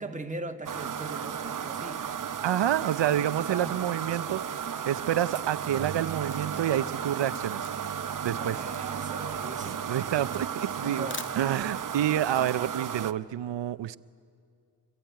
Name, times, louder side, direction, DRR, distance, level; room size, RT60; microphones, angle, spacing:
voice 1, 0.0-2.0 3.5-4.0 8.4-9.9 10.8-11.3, right 2 dB, 15° right, 5 dB, 1.4 m, -40 dB
sound 1, 0.7-13.1, right 7 dB, 45° right, 0.8 m, -34 dB
voice 2, 2.4-4.4 4.8-7.7 8.2-8.6 9.6-11.1 11.3-14.0, right 11 dB, 80° right, 15 dB, 0.7 m, -28 dB
Camera, 6.1-11.9, left 5 dB, 30° left, 0.6 m, -46 dB
27.0 x 24.0 x 9.2 m, 2.2 s
wide cardioid pair, 140°, 43 cm